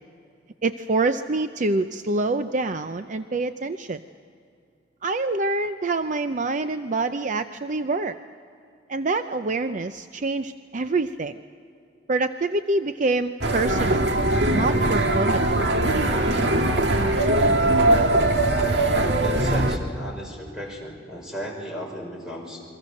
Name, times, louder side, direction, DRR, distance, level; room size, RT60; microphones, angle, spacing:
voice 1, 0.6-4.0 5.0-8.1 8.9-11.4 12.1-14.1 14.5-15.6, right 3 dB, 45° right, 9 dB, 0.6 m, -26 dB
sound 1, 13.4-19.8, right 1 dB, 75° right, 1.8 m, -21 dB
voice 2, 19.2-22.6, equal, 5° right, -1 dB, 5.7 m, -36 dB
29.0 x 23.0 x 6.5 m, 2.4 s
head